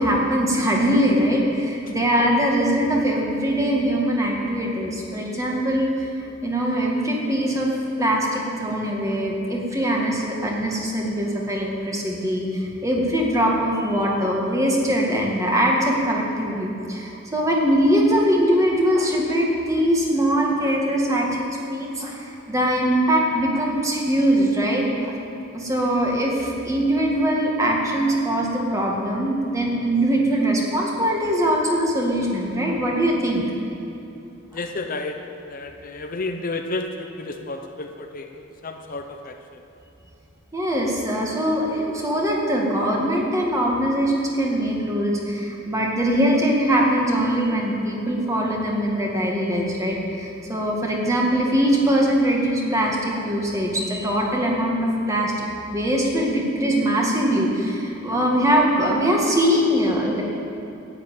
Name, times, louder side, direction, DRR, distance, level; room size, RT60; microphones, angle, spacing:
voice 1, 0.0-6.1 6.4-7.7 8.0-25.1 25.5-33.4 40.5-55.3 55.7-60.2, equal, 15° right, -2 dB, 2.0 m, -22 dB
voice 2, 34.5-35.1 35.5-39.3, left 2 dB, 45° left, 4 dB, 0.8 m, -31 dB
11.5 x 8.9 x 8.8 m, 2.8 s
head